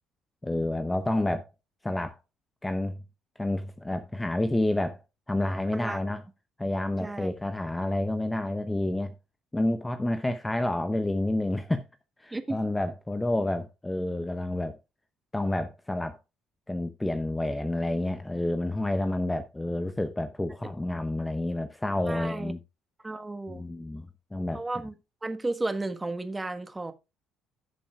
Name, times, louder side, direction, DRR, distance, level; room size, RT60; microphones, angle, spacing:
voice 1, 0.4-1.5 1.8-2.2 2.6-3.0 3.4-5.0 5.3-6.2 6.6-9.1 9.5-11.9 12.2-14.8 15.3-16.2 16.7-22.6 23.5-24.6, left 1 dB, 10° left, 0.8 m, -29 dB
voice 2, 7.0-7.3 12.3-12.6 22.1-22.5 23.0-23.6 24.5-24.9 25.2-26.9, right 2 dB, 15° right, 1.4 m, -33 dB
16.5 x 7.0 x 2.4 m
figure-of-eight pair, 50°, 0 cm